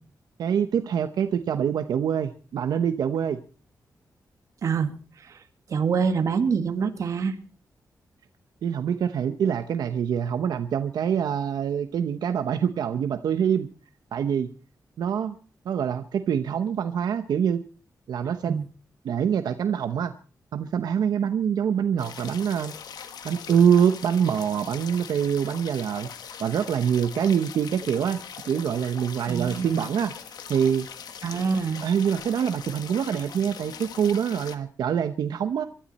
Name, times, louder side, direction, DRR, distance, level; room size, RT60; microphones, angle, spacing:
voice 1, 0.4-3.4 8.6-13.7 14.1-14.5 15.0-15.4 15.6-17.6 18.1-18.5 19.0-20.1 20.5-22.7 23.2-26.1 26.4-30.1 30.5-30.9 31.8-35.6, right 8 dB, 85° right, 9 dB, 0.9 m, -25 dB
voice 2, 5.7-7.4 18.5-18.6 29.3-29.8 31.2-31.8, right 6 dB, 55° right, 6 dB, 1.9 m, -25 dB
sound 1, 22.0-34.6, left 7 dB, 85° left, 1.5 m, -41 dB
24.0 x 13.0 x 4.3 m, 0.38 s
wide cardioid pair, 175°, 7 cm